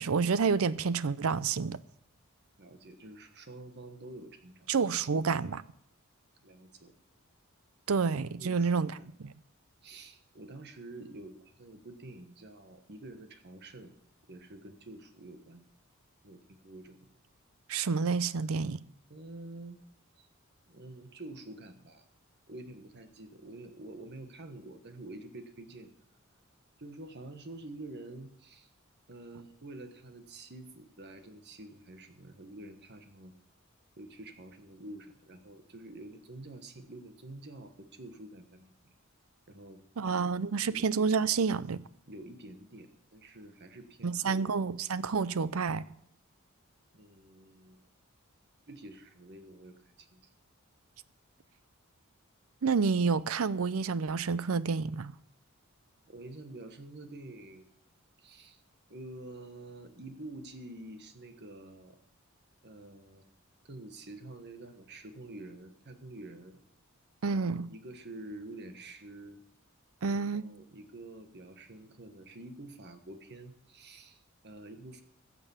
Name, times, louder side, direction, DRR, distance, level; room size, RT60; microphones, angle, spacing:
voice 1, 0.0-1.8 4.7-5.6 7.9-9.0 9.2-9.3 17.7-18.8 40.0-41.8 44.0-45.8 52.6-55.1 67.2-67.7 70.0-70.4, right 5 dB, 80° right, 0.6 m, -29 dB
voice 2, 2.6-4.7 6.4-6.9 8.4-9.1 9.8-13.9 14.3-15.6 16.2-17.1 19.1-19.8 20.2-20.3 20.7-22.0 22.5-25.9 26.8-28.7 29.1-33.3 34.0-38.9 39.5-39.8 40.1-40.9 42.1-44.7 46.9-47.8 48.7-50.2 56.1-57.7 58.2-58.6 58.9-62.0 62.6-63.3 63.6-66.6 67.3-69.4 70.1-75.0, right 2 dB, 50° right, 1.4 m, -48 dB
15.5 x 7.0 x 7.2 m
head